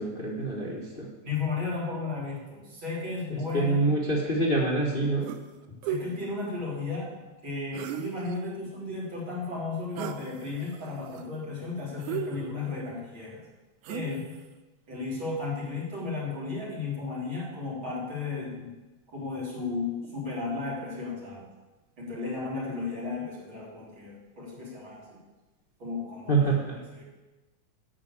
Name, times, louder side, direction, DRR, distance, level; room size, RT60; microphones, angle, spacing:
voice 1, 0.0-1.1 3.3-5.3 26.3-26.7, right 2 dB, 75° left, -2 dB, 0.5 m, -26 dB
voice 2, 1.2-3.8 5.8-7.1 7.4-13.4 13.9-14.2 14.9-18.7 19.1-21.5 22.0-25.2 25.8-26.4 26.9-27.0, left 4 dB, 40° right, -6 dB, 4.2 m, -34 dB
sound 1, 5.3-5.5 5.8-6.1 7.7-8.4 10.0-10.3 10.7-11.2 12.0-12.8 13.8-14.3, right 9 dB, 85° right, 2.1 m, -35 dB
12.0 x 4.9 x 8.5 m, 1.1 s
omnidirectional pair, 3.4 m